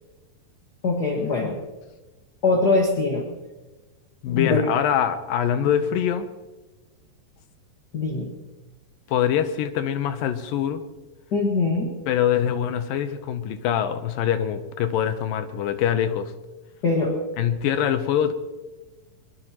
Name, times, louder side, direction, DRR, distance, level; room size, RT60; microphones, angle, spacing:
voice 1, 0.8-1.6 2.4-3.3 4.3-4.7 7.9-8.3 11.3-11.9 16.8-17.2, left 3 dB, 40° left, 0 dB, 1.6 m, -22 dB
voice 2, 4.2-6.3 9.1-10.8 12.1-16.3 17.4-18.3, left 9 dB, 75° left, 10 dB, 2.4 m, -24 dB
22.0 x 21.0 x 3.0 m, 1.1 s
omnidirectional pair, 4.2 m